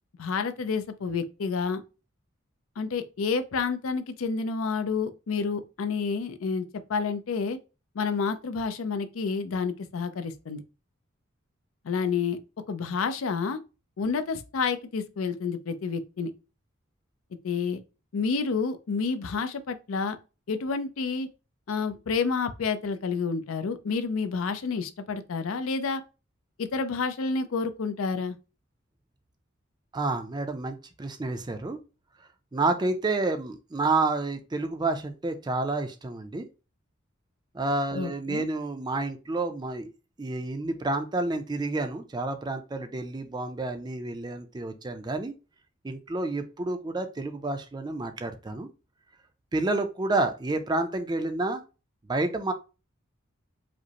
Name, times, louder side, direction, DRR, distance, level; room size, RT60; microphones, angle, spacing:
voice 1, 0.2-1.8 2.8-7.6 8.0-10.6 11.8-12.4 12.7-13.6 14.0-16.3 17.4-17.8 18.1-20.2 20.5-21.3 21.7-26.0 26.6-28.3 37.9-38.5, left 5 dB, 85° left, 0.5 m, -29 dB
voice 2, 29.9-31.8 32.5-36.5 37.5-39.9 40.2-45.3 45.8-48.7 49.5-51.6 52.1-52.5, right 2 dB, 20° right, 0.4 m, -29 dB
4.9 x 2.0 x 2.8 m
head